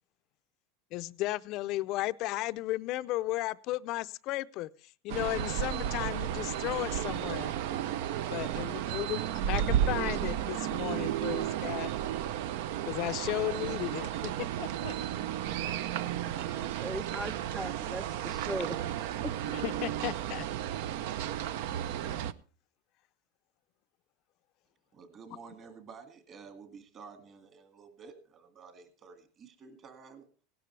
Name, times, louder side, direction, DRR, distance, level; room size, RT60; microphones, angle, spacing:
voice 1, 0.9-4.7 5.0-7.5 8.3-9.2 9.5-9.6 9.9-11.9 12.9-14.9 19.5-20.5, left 17 dB, 50° left, 0.5 m, -34 dB
sound 1, 5.1-22.3, right 11 dB, 70° right, 0.6 m, -33 dB
voice 2, 16.5-19.3, equal, ahead, 0.5 m, -39 dB
voice 3, 24.9-30.3, right 5 dB, 30° right, 2.1 m, -51 dB
17.5 x 12.0 x 3.3 m
supercardioid pair, 140°, 0 cm